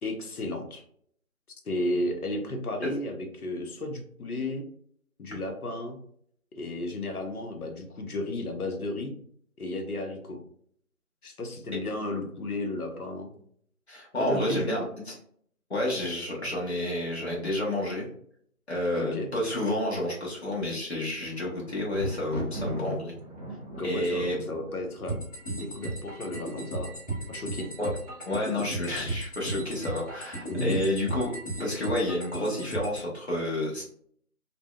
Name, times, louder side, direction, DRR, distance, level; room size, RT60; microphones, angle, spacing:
voice 1, 0.0-0.8 1.7-4.6 5.2-6.0 6.6-9.1 9.6-10.4 11.2-13.3 14.2-14.7 19.0-19.3 23.8-25.2 25.5-26.9 27.3-27.7 30.5-30.8, left 1 dB, 80° left, 4 dB, 0.8 m, -33 dB
voice 2, 13.9-14.8 15.1-15.2 15.7-18.1 18.7-23.2 23.8-24.4 27.8-27.9 28.3-31.3 31.6-33.8, left 1 dB, 45° left, -3 dB, 0.9 m, -30 dB
Thunder, 21.1-26.1 26.8-27.3 27.6-27.7, right 1 dB, 30° right, 0.7 m, -38 dB
sound 1, 25.1-33.1, right 1 dB, 15° left, 1.3 m, -35 dB
2.6 x 2.1 x 2.3 m, 0.64 s
figure-of-eight pair, 165°, 44 cm